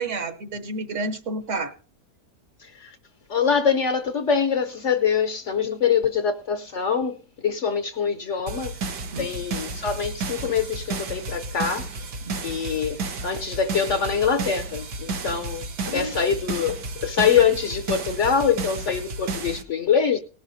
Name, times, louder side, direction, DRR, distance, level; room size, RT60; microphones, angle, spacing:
voice 1, 0.0-1.7 9.1-9.3 12.2-12.3 15.8-16.1, right 2 dB, 50° right, 1.4 m, -30 dB
voice 2, 2.6-3.0 3.3-7.2 7.4-8.8 9.2-11.9 12.4-20.2, left 6 dB, 55° left, 1.0 m, -24 dB
sound 1, 8.5-19.6, right 3 dB, 85° right, 1.8 m, -32 dB
18.5 x 11.5 x 2.7 m
omnidirectional pair, 1.7 m